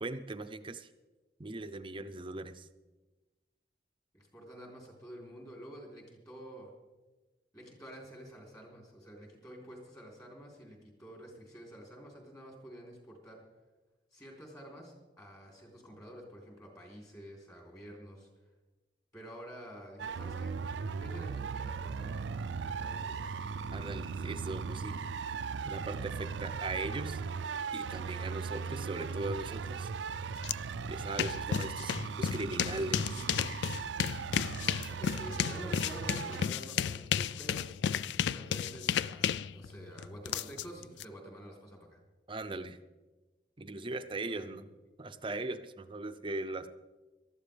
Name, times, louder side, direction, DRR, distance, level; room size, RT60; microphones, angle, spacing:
voice 1, 0.0-0.9 1.4-2.7 23.7-25.0 25.6-27.2 27.7-29.9 30.8-33.3 42.3-42.8 43.6-44.7 45.0-46.7, right 2 dB, 30° right, 10 dB, 0.6 m, -39 dB
voice 2, 4.1-6.7 7.5-13.4 14.1-18.3 19.1-20.6 21.0-22.4 22.6-23.4 31.5-31.7 34.9-37.6 38.2-42.0 44.2-44.6, equal, 20° left, 0 dB, 3.4 m, -49 dB
sound 1, 20.0-36.5, right 5 dB, 90° right, 0.4 m, -38 dB
sound 2, 30.4-30.5 30.9-41.0, left 8 dB, 75° left, 0.3 m, -33 dB
19.0 x 13.0 x 3.4 m, 1.2 s
head